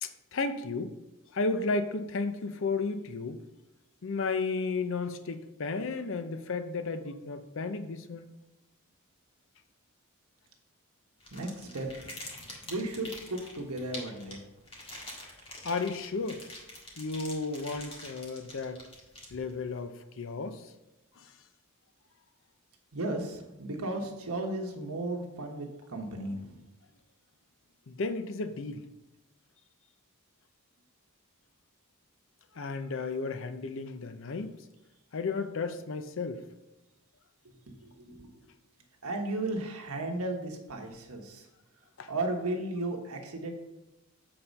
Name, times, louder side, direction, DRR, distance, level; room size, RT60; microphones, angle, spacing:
voice 1, 0.0-0.9 1.3-3.4 4.0-8.3 15.6-16.4 17.0-18.8 19.3-20.6 21.2-21.3 27.9-28.8 32.6-34.5 35.1-36.4 42.0-42.1, left 3 dB, 60° left, 10 dB, 0.6 m, -33 dB
sound 1, 11.2-19.7, left 1 dB, 25° left, 1.7 m, -46 dB
voice 2, 11.3-12.1 12.7-14.4 22.9-26.6 37.7-38.3 39.0-41.4 42.1-43.5, right 2 dB, 90° right, 2 dB, 1.3 m, -35 dB
7.7 x 4.3 x 5.3 m, 0.99 s
head